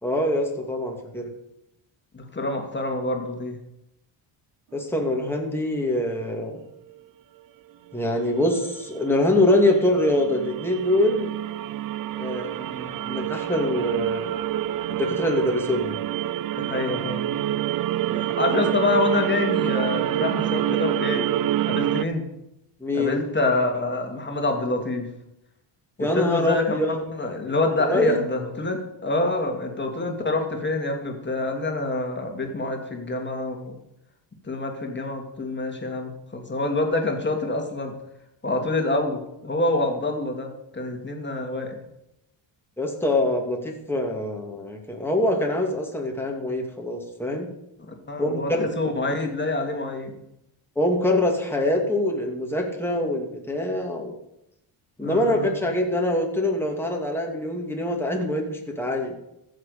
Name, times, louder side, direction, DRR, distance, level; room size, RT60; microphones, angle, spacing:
voice 1, 0.0-1.3 4.7-6.5 7.9-11.3 12.1-14.3 15.0-16.0 22.8-23.2 26.0-26.9 27.8-28.2 42.8-47.5 48.2-48.7 50.8-54.2 55.0-59.1, left 1 dB, 5° left, 1 dB, 2.6 m, -24 dB
voice 2, 2.1-3.6 16.6-17.3 18.1-21.3 21.7-22.3 22.9-25.1 26.0-33.7 34.5-37.9 38.4-41.7 47.9-50.2 55.0-55.6, left 2 dB, 20° left, 3 dB, 2.7 m, -26 dB
sound 1, 6.9-7.0 8.0-22.0, right 12 dB, 45° right, 0.4 m, -27 dB
15.0 x 6.6 x 6.7 m, 0.85 s
cardioid pair, 105°, 50 cm